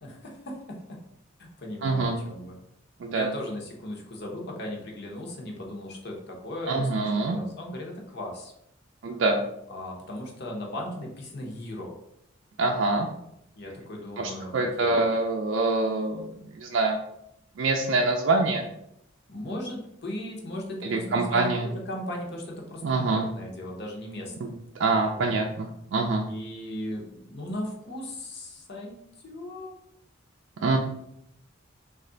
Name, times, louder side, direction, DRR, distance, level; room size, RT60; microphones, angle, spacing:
voice 1, 0.0-1.0 1.4-2.6 3.1-8.5 9.7-11.9 13.6-15.1 19.3-24.5 25.1-25.4 26.2-29.8, left 1 dB, 55° left, 0 dB, 0.8 m, -37 dB
voice 2, 1.8-2.1 3.0-3.3 6.7-7.4 9.0-9.4 12.6-13.1 14.2-17.0 17.6-18.6 20.8-21.7 22.8-23.3 24.4-24.5 24.8-26.2 30.6-30.8, right 3 dB, 70° right, 1 dB, 0.4 m, -25 dB
3.1 x 2.4 x 3.8 m, 0.77 s
head